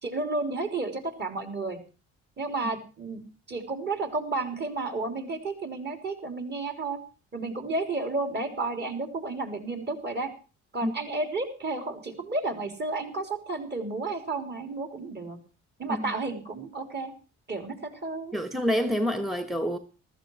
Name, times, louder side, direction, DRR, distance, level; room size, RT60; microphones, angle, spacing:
voice 1, 0.0-1.8 2.4-3.2 3.5-7.0 7.3-10.3 10.7-15.4 15.8-17.1 17.5-18.3, right 3 dB, 35° right, 3.5 m, -32 dB
voice 2, 18.3-19.8, equal, ahead, 1.1 m, -27 dB
14.5 x 13.5 x 4.6 m
cardioid pair, 90°, 30 cm